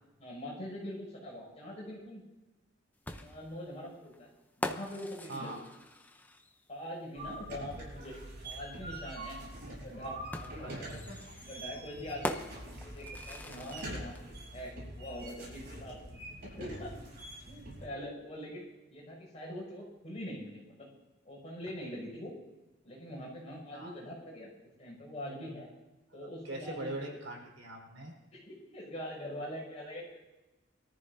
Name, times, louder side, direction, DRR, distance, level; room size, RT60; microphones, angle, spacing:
voice 1, 0.2-2.2 3.2-4.3 4.6-5.6 6.7-8.2 8.4-9.4 9.8-11.0 11.4-12.4 12.8-14.1 14.5-17.1 17.5-20.9 21.2-22.3 22.8-24.5 24.8-25.7 26.1-27.2 28.3-30.2, equal, 35° left, -3 dB, 6.4 m, -43 dB
sound 1, 3.1-6.7 8.2-8.3 10.3-14.2, left 1 dB, 10° left, 0.7 m, -42 dB
sound 2, 7.1-17.8, right 1 dB, 55° right, 5.6 m, -45 dB
voice 2, 10.6-11.3 23.7-23.9 26.1-28.1, right 1 dB, 80° right, -1 dB, 4.5 m, -42 dB
23.0 x 14.0 x 2.7 m, 1.0 s
head